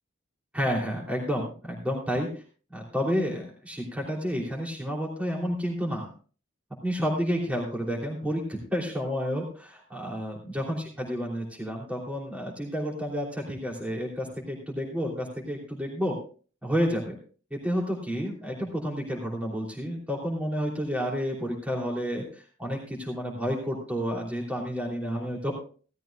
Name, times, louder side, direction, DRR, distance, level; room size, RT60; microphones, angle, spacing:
voice 1, 0.5-2.3 2.7-6.1 6.8-16.2 16.6-17.2 17.5-25.5, equal, 5° right, -2 dB, 3.2 m, -30 dB
17.0 x 13.5 x 2.4 m, 0.39 s
head